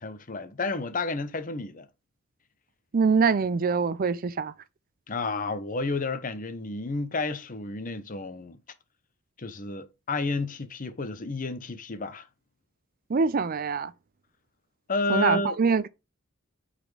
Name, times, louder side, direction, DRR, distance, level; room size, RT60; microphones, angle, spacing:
voice 1, 0.0-1.9 5.1-8.6 9.4-12.3 14.9-15.6, left 3 dB, 40° left, 0.9 m, -31 dB
voice 2, 2.9-4.5 13.1-13.9 15.1-15.9, right 5 dB, 45° right, 0.4 m, -24 dB
7.7 x 4.3 x 4.8 m
head